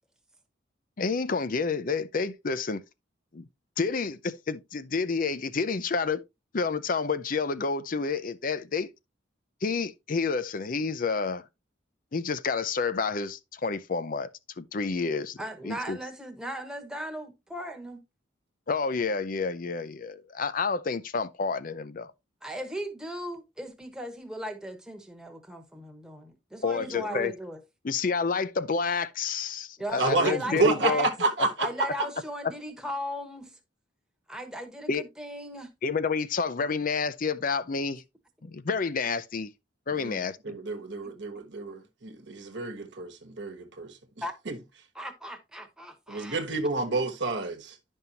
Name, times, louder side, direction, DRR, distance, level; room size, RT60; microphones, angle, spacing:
voice 1, 1.0-2.8 3.3-3.4 3.8-6.2 6.5-8.9 9.6-11.4 12.1-14.3 14.6-15.4 15.6-16.0 18.7-22.1 26.6-27.3 27.8-31.1 34.9-35.1 35.8-38.0 38.4-39.5 39.9-40.6, left 4 dB, 45° left, 0.5 m, -29 dB
voice 2, 15.4-18.0 22.4-27.6 29.8-31.1 31.6-33.5 34.3-35.7 41.0-41.1 44.2-44.3 44.9-46.5, equal, 5° right, 1.2 m, -37 dB
voice 3, 30.0-31.7 40.0-40.2 40.4-43.9 44.5-44.6 46.1-47.7, right 3 dB, 65° right, 1.2 m, -29 dB
11.0 x 5.4 x 2.8 m
head